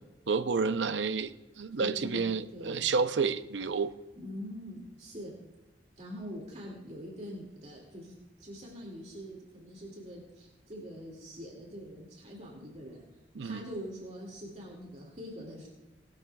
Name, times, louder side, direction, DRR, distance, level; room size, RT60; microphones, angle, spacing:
voice 1, 0.3-3.9 13.3-13.6, right 5 dB, 85° right, 11 dB, 0.7 m, -30 dB
voice 2, 1.8-2.3 2.5-2.9 4.2-5.3 6.0-8.1 8.4-13.0 13.4-15.7, equal, 40° right, -2 dB, 2.5 m, -44 dB
19.0 x 12.0 x 2.4 m, 1.1 s
head